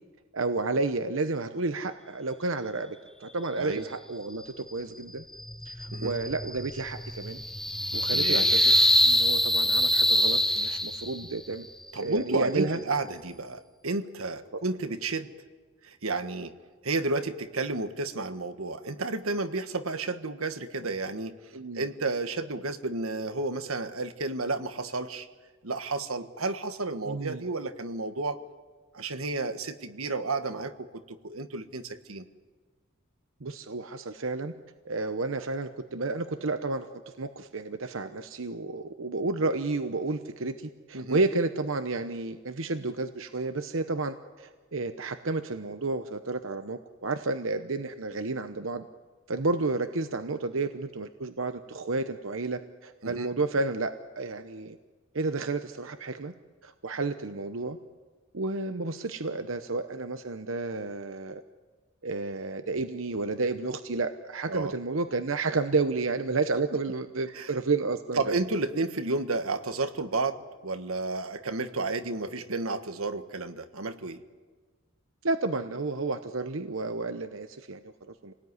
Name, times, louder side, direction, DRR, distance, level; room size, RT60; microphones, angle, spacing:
voice 1, 0.3-5.2 5.6-7.4 7.9-8.7 9.0-11.7 12.0-12.8 21.5-21.9 27.1-27.4 33.4-34.5 34.9-36.9 37.2-48.9 49.3-54.8 55.1-56.3 56.6-57.8 58.3-61.4 62.0-68.4 75.2-78.3, right 3 dB, 70° right, 9 dB, 1.0 m, -31 dB
voice 2, 3.6-3.9 5.9-6.2 8.1-8.5 10.6-10.8 11.9-15.3 15.8-16.5 16.8-25.3 25.6-28.4 28.9-32.3 40.9-41.2 53.0-53.3 64.5-64.7 67.3-67.5 68.1-74.2, right 3 dB, 90° right, 9 dB, 1.5 m, -32 dB
sound 1, 5.3-11.3, left 1 dB, ahead, 0.8 m, -24 dB
27.5 x 19.0 x 9.7 m, 1.4 s
head